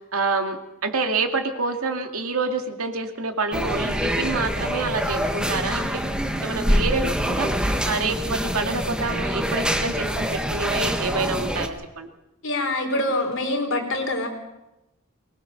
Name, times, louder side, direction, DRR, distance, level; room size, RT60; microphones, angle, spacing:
voice 1, 0.0-6.0 6.4-12.1, right 3 dB, 85° right, 5 dB, 2.4 m, -27 dB
sound 1, 3.5-11.7, equal, 5° right, 1.4 m, -25 dB
voice 2, 12.4-14.3, left 1 dB, 60° left, 3 dB, 4.3 m, -25 dB
23.5 x 20.5 x 6.6 m, 0.94 s
head